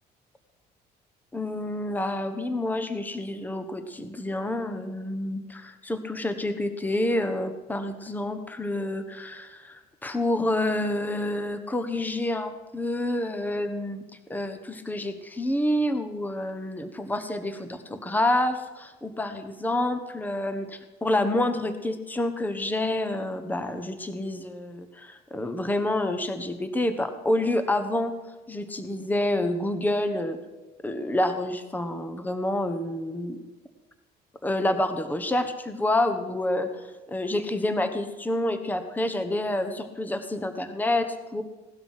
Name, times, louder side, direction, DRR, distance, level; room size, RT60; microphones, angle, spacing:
voice 1, 1.3-14.0 14.3-28.1 28.5-30.4 30.8-33.4 34.4-41.4, left 1 dB, 10° left, 8 dB, 1.3 m, -28 dB
17.5 x 12.0 x 5.8 m, 1.2 s
cardioid pair, 110°, 17 cm